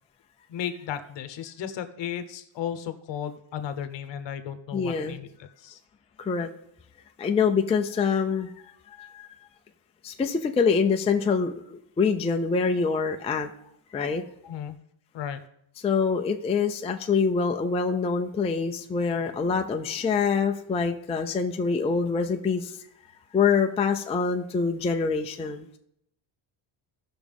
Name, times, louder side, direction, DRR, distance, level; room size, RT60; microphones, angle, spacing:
voice 1, 0.5-5.3 5.6-5.8 14.4-14.8 15.1-15.4, left 9 dB, 60° left, 10 dB, 1.0 m, -34 dB
voice 2, 4.7-5.2 6.2-6.5 7.2-8.5 9.0-9.3 10.0-13.5 13.9-14.2 15.8-22.8 23.3-25.8, left 5 dB, 15° left, 4 dB, 0.4 m, -25 dB
17.0 x 6.1 x 3.5 m, 0.74 s
cardioid pair, 170°, 49 cm